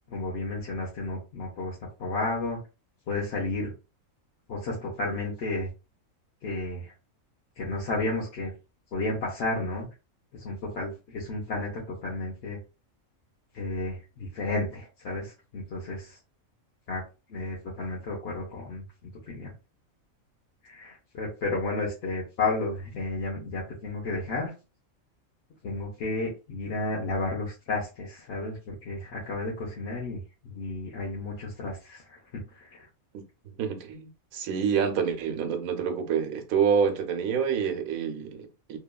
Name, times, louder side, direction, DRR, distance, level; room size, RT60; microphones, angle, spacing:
voice 1, 0.1-2.6 3.1-3.7 4.5-5.7 6.4-6.9 7.6-8.5 8.9-9.9 10.3-12.6 13.5-16.2 16.9-17.0 17.3-18.8 19.3-19.5 20.6-24.5 25.6-32.9, left 2 dB, 60° left, 0.9 m, -32 dB
voice 2, 33.6-38.8, right 7 dB, 80° right, 1.0 m, -27 dB
2.9 x 2.3 x 2.2 m
omnidirectional pair, 1.4 m